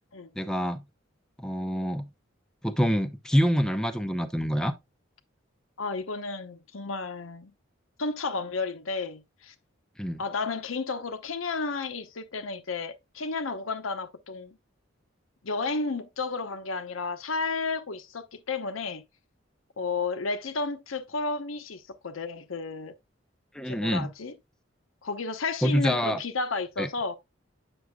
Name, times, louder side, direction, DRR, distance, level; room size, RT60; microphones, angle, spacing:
voice 1, 0.4-0.8 1.4-2.1 2.6-4.7 10.0-10.2 23.5-24.1 25.6-26.2 26.8-26.9, equal, 5° left, 0.5 m, -26 dB
voice 2, 5.8-7.5 8.0-9.5 10.2-14.6 15.4-19.0 19.8-22.9 23.6-24.3 25.0-27.2, left 4 dB, 85° left, 0.8 m, -32 dB
8.0 x 6.2 x 2.2 m
head